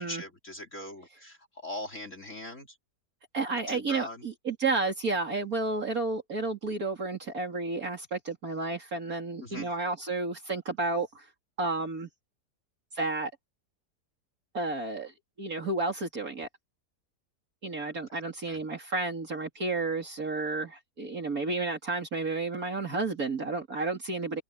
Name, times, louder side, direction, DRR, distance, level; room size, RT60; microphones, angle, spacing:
voice 1, 0.0-2.8 3.7-4.2 9.4-9.7 17.9-18.0 18.5-18.6, left 1 dB, 45° left, 4.0 m, -41 dB
voice 2, 3.3-11.2 11.6-12.1 12.9-13.3 14.5-15.1 15.4-16.5 17.6-24.4, right 3 dB, 55° right, 3.3 m, -31 dB
omnidirectional pair, 1.8 m